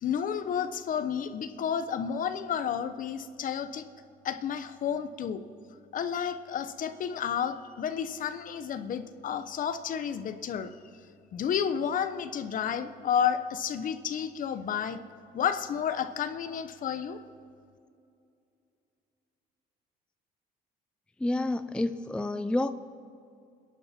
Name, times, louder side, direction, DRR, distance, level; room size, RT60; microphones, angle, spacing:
voice 1, 0.0-3.9 4.2-5.4 5.9-10.7 11.3-15.0 15.3-17.2, left 8 dB, 55° left, 10 dB, 1.0 m, -31 dB
voice 2, 21.2-22.7, left 2 dB, 5° left, 11 dB, 0.4 m, -29 dB
27.0 x 10.5 x 4.4 m, 2.5 s
cardioid pair, 110°, 17 cm